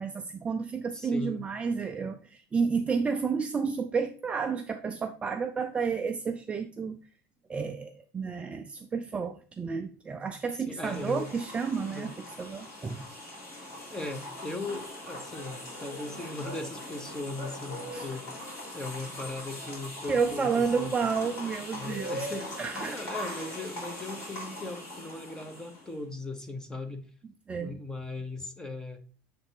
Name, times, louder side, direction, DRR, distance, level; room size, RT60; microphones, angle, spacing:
voice 1, 0.0-7.0 7.5-13.0 17.9-18.1 20.1-22.3 22.6-23.0 27.5-27.8, right 5 dB, 15° right, 5 dB, 0.4 m, -31 dB
voice 2, 0.9-1.5 10.7-11.3 11.9-12.1 13.9-18.3 18.7-20.9 21.7-27.1 27.6-29.0, left 2 dB, 10° left, 7 dB, 0.9 m, -38 dB
sound 1, 10.8-26.0, left 1 dB, 35° left, 3.2 m, -41 dB
7.7 x 3.4 x 4.4 m, 0.39 s
supercardioid pair, 145°, 7 cm